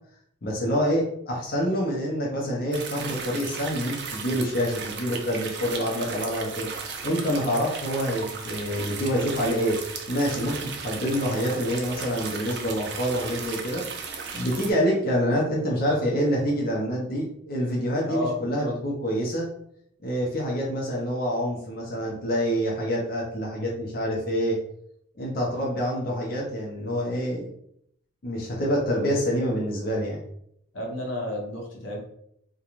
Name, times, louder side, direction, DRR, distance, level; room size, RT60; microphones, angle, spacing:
voice 1, 0.4-6.7 7.0-9.8 10.1-14.1 14.3-19.5 20.0-24.6 25.2-27.5 28.2-30.2, equal, 50° left, -3 dB, 0.5 m, -26 dB
sound 1, 2.7-14.7, right 5 dB, 60° right, 0.4 m, -36 dB
voice 2, 18.0-18.8 30.7-32.0, left 1 dB, 85° left, -1 dB, 0.8 m, -31 dB
2.4 x 2.2 x 2.9 m, 0.71 s
head